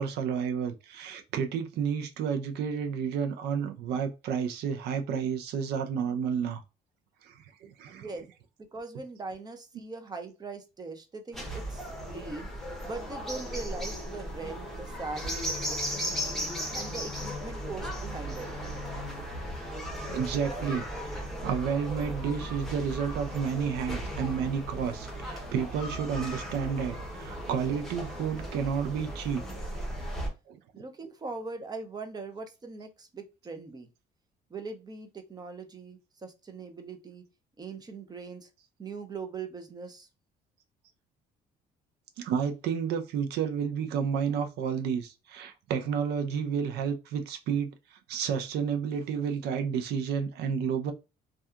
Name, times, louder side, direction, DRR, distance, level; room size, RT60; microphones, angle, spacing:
voice 1, 0.0-6.6 7.2-8.1 20.1-29.4 30.5-30.8 42.2-50.9, right 7 dB, 75° right, 0.5 m, -31 dB
voice 2, 7.9-8.2 8.6-12.5 12.8-16.4 16.7-18.5 30.7-33.9 34.5-37.2 37.6-38.5 38.8-40.1, right 4 dB, 25° right, 0.5 m, -41 dB
sound 1, 11.3-30.3, equal, ahead, 0.9 m, -36 dB
2.6 x 2.3 x 2.3 m
cardioid pair, 110°, 17 cm